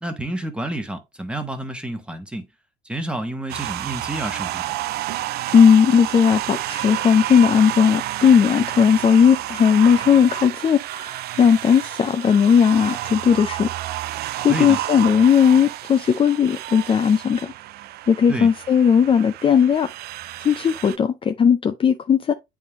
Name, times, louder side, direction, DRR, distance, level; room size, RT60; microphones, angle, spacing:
voice 1, 0.0-2.5 2.8-4.8 14.5-14.8 18.3-18.5, right 1 dB, 5° right, 1.3 m, -29 dB
sound 1, 3.5-21.0, right 15 dB, 70° right, 0.4 m, -30 dB
voice 2, 5.5-13.7 14.4-17.5 18.1-19.9 20.4-22.3, left 7 dB, 30° left, 0.5 m, -17 dB
8.5 x 3.6 x 3.0 m
cardioid pair, 110°, 17 cm